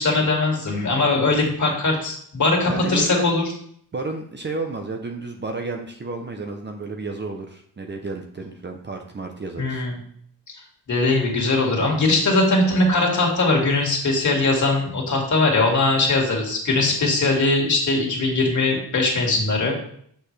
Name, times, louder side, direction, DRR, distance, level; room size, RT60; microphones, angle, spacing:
voice 1, 0.0-3.4 9.6-10.0 10.9-19.7, left 2 dB, 45° left, -1 dB, 2.2 m, -20 dB
voice 2, 2.7-3.3 3.9-9.8 12.1-12.2 16.0-16.1, right 3 dB, 25° right, 3 dB, 0.7 m, -32 dB
8.0 x 6.6 x 3.3 m, 0.64 s
wide cardioid pair, 155°, 40 cm